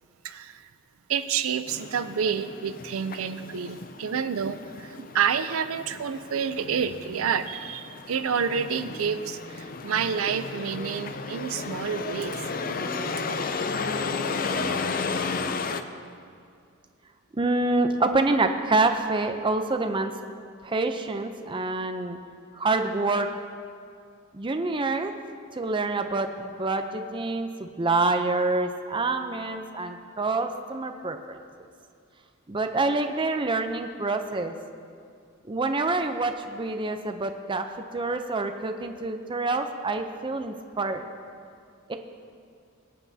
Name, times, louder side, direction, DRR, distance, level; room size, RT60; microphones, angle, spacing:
voice 1, 0.2-0.7 1.1-12.4, right 7 dB, 70° right, 11 dB, 0.5 m, -29 dB
sound 1, 1.7-15.8, left 4 dB, 40° left, 0.5 m, -33 dB
voice 2, 17.3-20.1 20.6-22.2 22.6-23.3 24.3-25.1 25.6-31.4 32.5-34.5 35.5-37.7 37.9-41.0 41.9-42.0, right 3 dB, 25° right, 6 dB, 0.5 m, -26 dB
22.0 x 9.5 x 2.7 m, 2.3 s
head